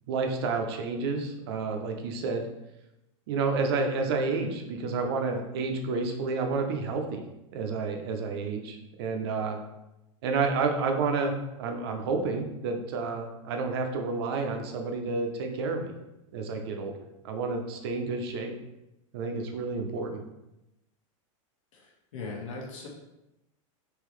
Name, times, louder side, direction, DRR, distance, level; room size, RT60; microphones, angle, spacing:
voice 1, 0.1-2.5 3.3-7.2 7.5-9.6 10.2-15.9 16.3-16.9 17.2-18.5 19.1-20.2, right 4 dB, 50° right, 4 dB, 0.5 m, -30 dB
voice 2, 21.7-22.9, left 3 dB, 75° left, -2 dB, 1.2 m, -39 dB
3.7 x 2.9 x 3.0 m, 0.91 s
supercardioid pair, 175°, 17 cm